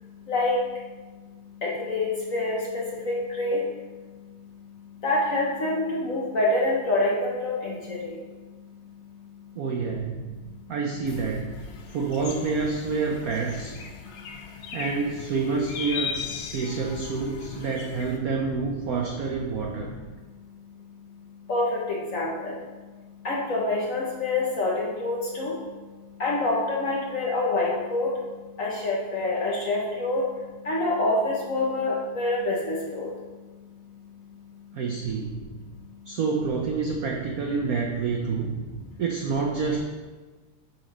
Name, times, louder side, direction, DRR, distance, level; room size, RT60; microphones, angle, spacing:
voice 1, 1.6-3.6 5.0-8.1 21.5-21.8 22.1-22.5 23.2-25.5 26.2-28.1 28.6-30.2 30.7-33.1, left 2 dB, 50° left, -3 dB, 1.1 m, -26 dB
voice 2, 9.6-11.5 11.9-13.8 14.7-19.9 34.7-35.5 36.1-38.6 39.0-39.8, right 4 dB, 75° right, 1 dB, 0.8 m, -28 dB
sound 1, 11.1-18.2, left 6 dB, 75° left, 1.5 m, -38 dB
7.5 x 4.2 x 5.0 m, 1.3 s
omnidirectional pair, 2.3 m